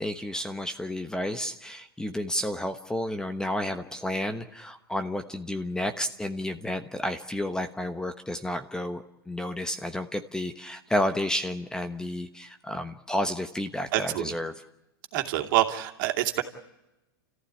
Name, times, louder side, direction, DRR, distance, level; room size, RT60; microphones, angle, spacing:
voice 1, 0.0-14.5, left 1 dB, 5° left, 9 dB, 1.1 m, -31 dB
voice 2, 13.9-14.3 15.1-16.4, right 14 dB, 55° right, 3 dB, 2.7 m, -26 dB
29.5 x 14.5 x 9.9 m, 0.96 s
hypercardioid pair, 120°, 13 cm